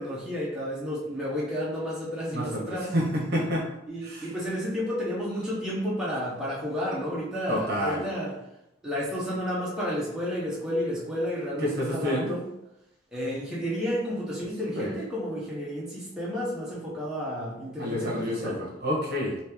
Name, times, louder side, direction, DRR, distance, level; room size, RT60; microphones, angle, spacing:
voice 1, 0.0-2.9 3.9-8.3 8.8-12.4 13.1-18.6, equal, 5° right, -7 dB, 0.8 m, -31 dB
voice 2, 2.3-3.7 4.0-4.3 7.5-8.0 11.6-12.4 14.8-15.0 17.8-19.4, equal, 55° right, -2 dB, 0.9 m, -29 dB
3.1 x 2.8 x 3.4 m, 0.87 s
head